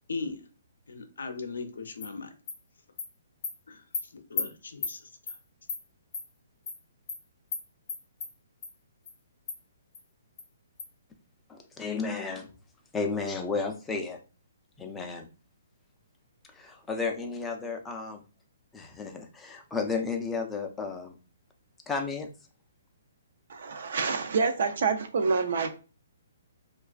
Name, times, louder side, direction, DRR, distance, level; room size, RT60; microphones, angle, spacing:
voice 1, 0.1-0.4 0.9-2.3 3.7-3.8 4.1-5.0 5.3-5.4, left 4 dB, 90° left, 0.5 m, -38 dB
Animal, 2.0-2.1 2.5-2.6 3.0-3.1 3.4-3.5 3.9-4.0 4.4-4.5 4.8-4.9 5.3-5.4 5.7-5.8 6.1-6.2 6.7-6.8 7.1-7.2 7.5-7.6 7.9-8.3 8.6-8.7 9.1-9.2 9.5-9.6 9.9-10.0 10.4-10.5 10.8-10.9, left 5 dB, 40° left, 0.7 m, -33 dB
voice 2, 11.5-12.5 12.9-14.2 14.8-15.3 16.5-18.2 18.7-21.2 21.9-22.3, left 4 dB, 10° left, 0.3 m, -33 dB
voice 3, 23.5-25.8, right 5 dB, 60° right, 0.4 m, -27 dB
2.4 x 2.2 x 2.3 m
hypercardioid pair, 160°, 0 cm